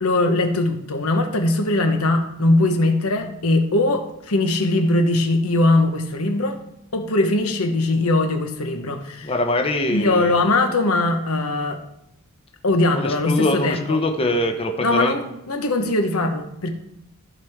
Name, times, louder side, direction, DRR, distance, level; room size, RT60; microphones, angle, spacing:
voice 1, 0.0-6.6 6.9-9.3 9.9-11.8 12.6-14.0 14.8-16.7, left 2 dB, 85° left, 5 dB, 1.2 m, -20 dB
voice 2, 9.2-10.4 12.9-15.2, left 2 dB, 25° left, 4 dB, 0.8 m, -23 dB
14.5 x 5.0 x 3.6 m, 0.84 s
head